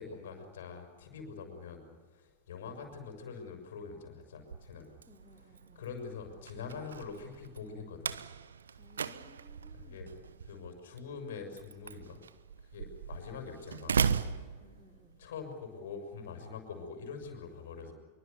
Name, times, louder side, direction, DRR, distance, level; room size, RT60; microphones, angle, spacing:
voice 1, 0.0-1.8 2.1-4.9 5.7-8.1 9.7-10.1 10.5-12.2 12.7-14.0 15.2-17.9, left 5 dB, 60° left, 5 dB, 6.4 m, -44 dB
Slam, 4.3-15.3, right 6 dB, 70° right, 1.1 m, -38 dB
voice 2, 5.1-5.9 8.8-10.3 14.6-15.2, left 2 dB, 5° left, 1 dB, 3.1 m, -61 dB
26.0 x 24.0 x 7.0 m, 1.4 s
figure-of-eight pair, 90°, 0 cm